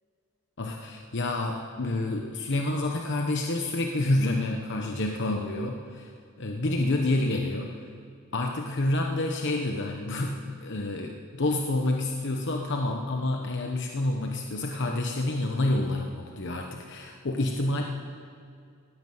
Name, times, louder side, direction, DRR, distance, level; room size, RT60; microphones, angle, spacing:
voice 1, 0.6-6.1 6.4-7.9 8.3-17.8, left 2 dB, 55° left, 2 dB, 1.0 m, -28 dB
18.0 x 9.5 x 7.7 m, 2.3 s
head